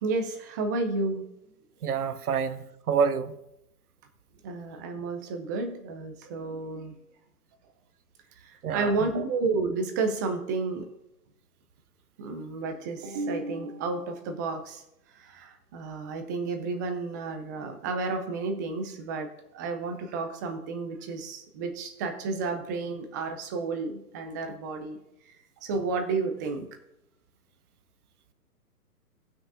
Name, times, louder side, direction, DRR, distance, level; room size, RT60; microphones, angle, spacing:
voice 1, 0.0-1.3 2.3-2.4 4.4-7.0 8.4-10.9 12.2-14.8 15.1-25.0 25.6-26.7, right 3 dB, 15° right, 0.5 m, -31 dB
voice 2, 1.8-3.4 8.6-8.9, right 6 dB, 70° right, 0.9 m, -27 dB
18.0 x 6.1 x 2.8 m
hypercardioid pair, 130°, 47 cm